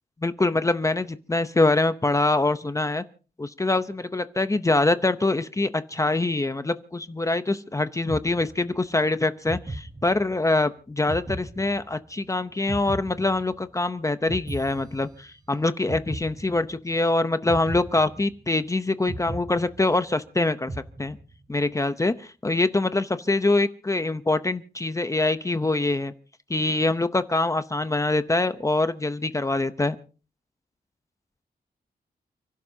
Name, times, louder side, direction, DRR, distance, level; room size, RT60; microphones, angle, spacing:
voice 1, 0.2-3.0 3.4-20.7 21.0-21.2 21.5-26.1 26.5-30.0, left 2 dB, 20° left, 11 dB, 0.7 m, -24 dB
sound 1, 8.1-8.9 9.5-10.5 11.1-12.2 12.7-13.9 14.3-15.5 15.9-16.9 17.5-18.6 19.1-20.3 20.7-21.5, right 2 dB, 25° right, 1.1 m, -37 dB
30.0 x 12.0 x 2.7 m, 0.37 s
wide cardioid pair, 110°, 17 cm